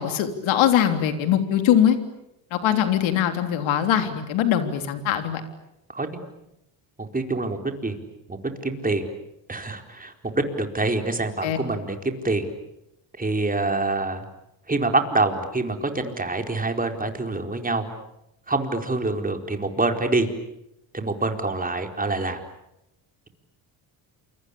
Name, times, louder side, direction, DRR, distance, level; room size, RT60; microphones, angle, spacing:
voice 1, 0.0-2.0 2.5-5.4 11.4-11.6, left 10 dB, 75° left, 7 dB, 3.5 m, -21 dB
voice 2, 5.9-6.2 7.0-8.0 8.3-9.1 9.5-12.5 13.2-14.2 14.7-17.8 18.5-20.3 20.9-22.4, right 2 dB, 20° right, 5 dB, 4.5 m, -26 dB
28.5 x 24.0 x 8.6 m, 0.88 s
supercardioid pair, 75°, 46 cm